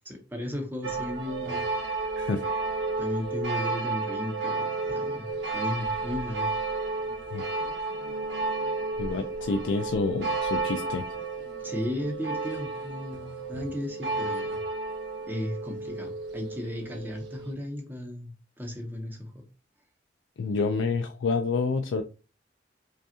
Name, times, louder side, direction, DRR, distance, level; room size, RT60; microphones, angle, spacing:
voice 1, 0.0-1.7 3.0-6.5 11.6-14.6 15.3-18.3 18.6-19.4, left 1 dB, 10° right, 2 dB, 0.8 m, -35 dB
sound 1, 0.8-17.5, right 3 dB, 75° right, 0.7 m, -32 dB
voice 2, 9.0-11.0 20.4-22.0, left 4 dB, 85° left, 6 dB, 0.4 m, -28 dB
5.0 x 2.3 x 2.7 m, 0.32 s
head